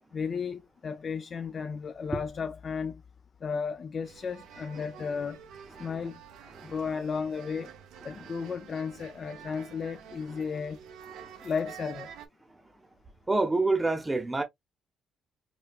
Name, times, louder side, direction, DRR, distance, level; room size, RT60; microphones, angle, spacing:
voice 1, 0.1-3.0 3.4-5.4 5.8-6.2 6.6-7.7 8.0-10.8 11.4-12.1, left 5 dB, 40° left, 0.3 m, -34 dB
sound 1, 4.0-12.3, right 8 dB, 85° right, 0.7 m, -49 dB
voice 2, 11.2-11.5 13.3-14.4, right 3 dB, 15° right, 0.7 m, -28 dB
4.9 x 2.2 x 2.3 m
cardioid pair, 105°, 0 cm